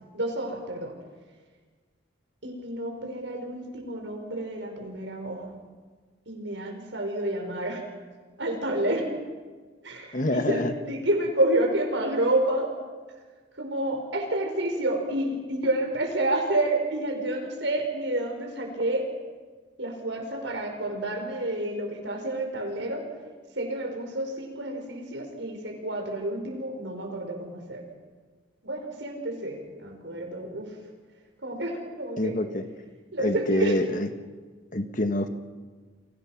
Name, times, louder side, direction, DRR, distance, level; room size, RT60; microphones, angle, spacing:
voice 1, 0.1-0.9 2.4-5.5 6.3-7.8 8.4-9.1 9.8-12.7 13.6-19.1 19.8-23.0 23.6-27.8 28.6-30.8 31.4-32.3 33.1-33.8, right 1 dB, 75° right, 3 dB, 5.6 m, -29 dB
voice 2, 10.1-10.7 32.2-32.6 33.2-34.1 34.7-35.3, left 1 dB, 45° left, 8 dB, 1.4 m, -26 dB
30.0 x 24.0 x 6.0 m, 1.5 s
head